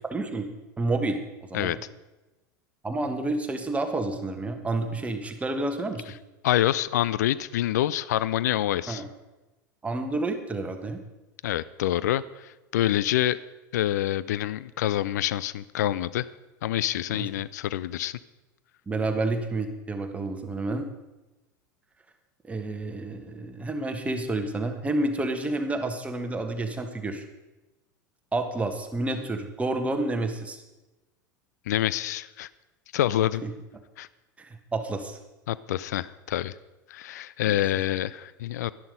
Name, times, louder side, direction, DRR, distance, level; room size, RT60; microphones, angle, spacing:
voice 1, 0.1-1.2 1.5-1.8 2.8-6.1 8.9-9.1 9.8-11.0 17.1-17.3 18.9-20.9 22.5-27.2 28.3-30.6 33.4-33.5 34.4-35.2 37.4-37.6, right 2 dB, 15° right, 5 dB, 1.5 m, -29 dB
voice 2, 6.4-9.0 11.4-13.4 13.7-16.3 16.6-18.1 31.7-32.5 32.9-33.4 34.0-34.1 35.5-36.5 36.9-38.7, left 13 dB, 60° left, 18 dB, 0.5 m, -26 dB
12.0 x 11.0 x 5.3 m, 1.1 s
figure-of-eight pair, 80°, 10 cm